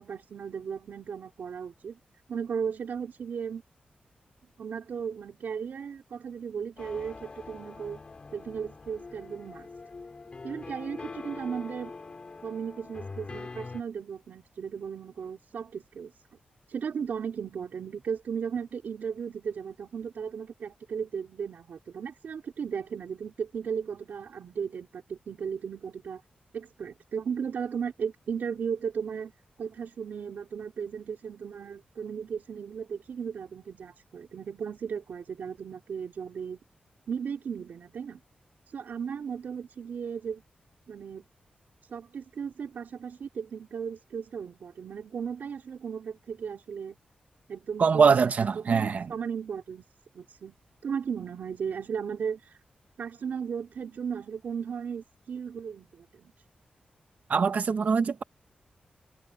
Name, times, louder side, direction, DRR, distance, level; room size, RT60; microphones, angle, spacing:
voice 1, 0.0-2.0 2.3-3.6 4.6-8.0 8.3-9.7 10.4-11.9 12.4-16.1 16.7-26.2 26.5-29.3 29.6-36.6 37.1-38.2 38.7-40.4 40.9-41.3 41.9-47.0 47.5-48.3 48.5-49.8 50.1-50.6 50.8-52.6 53.0-56.3, right 7 dB, 75° right, 4.4 m, -36 dB
sound 1, 6.8-13.8, left 3 dB, 35° left, 6.3 m, -43 dB
voice 2, 47.8-49.1 57.3-58.2, right 5 dB, 55° right, 1.2 m, -23 dB
wide cardioid pair, 145°, 3 cm